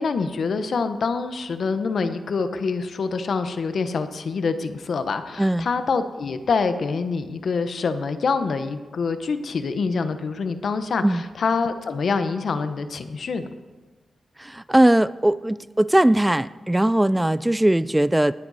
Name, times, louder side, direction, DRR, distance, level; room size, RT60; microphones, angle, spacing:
voice 1, 0.0-13.5, left 4 dB, 70° left, 10 dB, 1.0 m, -26 dB
voice 2, 5.4-5.7 11.0-11.2 14.4-18.3, right 1 dB, 10° right, 17 dB, 0.3 m, -19 dB
19.5 x 9.7 x 4.1 m, 1.3 s
cardioid pair, 80°, 0 cm